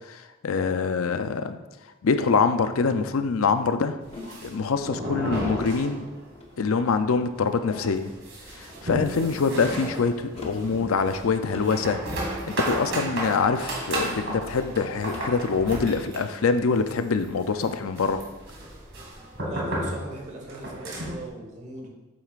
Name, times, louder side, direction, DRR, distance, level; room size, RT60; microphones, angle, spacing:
voice 1, 0.1-1.6 2.0-4.0 4.4-6.1 6.6-8.1 8.5-12.0 12.3-18.2, left 4 dB, 75° left, 9 dB, 0.5 m, -25 dB
sound 1, 4.0-6.4 6.7-6.8 7.1-7.2 7.6-21.3, right 1 dB, 60° right, 2.1 m, -34 dB
sound 2, 4.1-4.6 5.2-5.7 6.4-6.9 7.6-8.0 8.7-9.1 10.2-10.7 11.5-11.9 12.6-13.1 13.8-14.2 15.0-15.4, left 2 dB, 30° left, 1.0 m, -42 dB
voice 2, 19.4-21.9, right 1 dB, 35° right, 0 dB, 1.4 m, -39 dB
8.4 x 7.6 x 2.5 m, 1.1 s
head